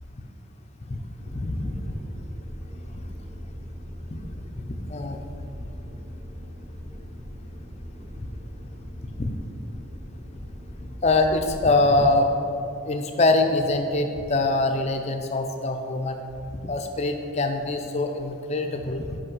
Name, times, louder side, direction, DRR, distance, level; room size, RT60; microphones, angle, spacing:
sound 1, 1.2-11.6, equal, 10° right, 1.0 m, -40 dB
voice 1, 1.3-2.0 4.9-5.2 9.2-9.3 11.0-12.4 12.8-16.2 16.6-19.2, left 2 dB, 30° left, 5 dB, 0.4 m, -24 dB
5.6 x 5.5 x 5.4 m, 2.7 s
head